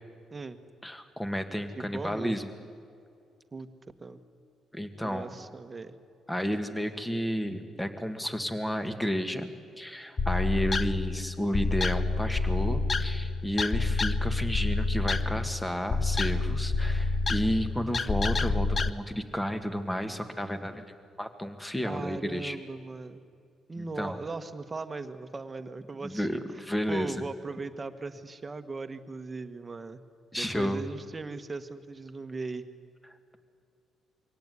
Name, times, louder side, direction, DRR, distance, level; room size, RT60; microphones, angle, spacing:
voice 1, 0.8-2.5 4.7-5.3 6.3-9.5 9.8-20.8 21.2-22.6 23.8-24.2 26.0-27.2 30.3-30.8, equal, 10° left, 8 dB, 1.9 m, -32 dB
voice 2, 1.8-2.4 3.5-3.7 4.0-4.2 5.0-5.9 21.8-23.2 23.7-30.0 30.3-32.6, right 3 dB, 30° right, 9 dB, 1.4 m, -38 dB
sound 1, 10.2-18.9, left 3 dB, 35° left, 0.7 m, -28 dB
23.5 x 17.0 x 9.7 m, 2.4 s
cardioid pair, 90°, 0 cm